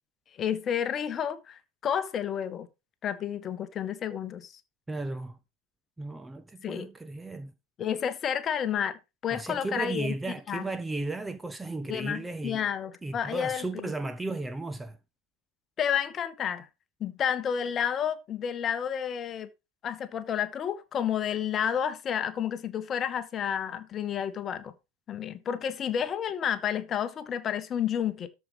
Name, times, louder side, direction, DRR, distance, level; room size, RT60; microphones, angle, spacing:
voice 1, 0.4-2.7 3.0-4.5 6.6-6.9 7.8-10.1 10.5-10.6 11.9-13.9 15.8-16.7 17.0-19.5 19.8-24.7 25.1-28.3, left 8 dB, 25° left, 1.2 m, -30 dB
voice 2, 4.9-5.4 6.0-7.5 9.3-12.6 13.0-15.0, right 2 dB, 10° right, 0.7 m, -35 dB
13.0 x 5.4 x 4.9 m
figure-of-eight pair, 90°, 0 cm